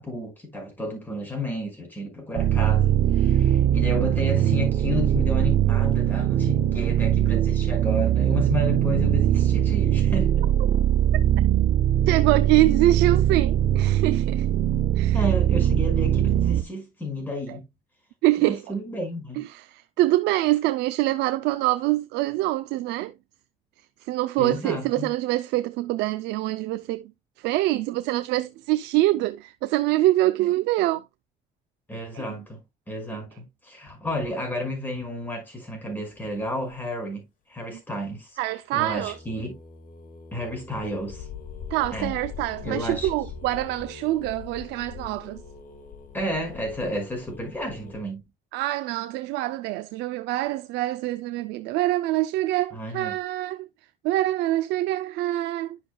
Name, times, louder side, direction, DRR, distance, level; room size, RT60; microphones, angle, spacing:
voice 1, 0.0-10.3 15.1-17.6 18.4-19.4 24.4-25.1 31.9-32.6 32.9-37.2 37.5-38.3 38.7-39.6 40.3-41.3 41.9-42.1 42.6-43.1 46.1-48.2 52.7-53.2, left 1 dB, 10° left, 5.5 m, -31 dB
sound 1, 2.3-16.6, right 11 dB, 60° right, 0.8 m, -21 dB
voice 2, 12.1-14.5 15.0-15.2 17.5-17.6 18.2-18.6 19.4-23.1 24.0-27.0 27.4-31.0 32.1-32.4 33.1-33.2 38.4-39.1 41.7-45.4 48.5-53.7 54.0-55.8, right 16 dB, 90° right, 0.5 m, -25 dB
sound 2, 36.1-36.7 38.9-48.0, left 6 dB, 55° left, 1.9 m, -42 dB
10.5 x 6.5 x 2.3 m
cardioid pair, 110°, 17 cm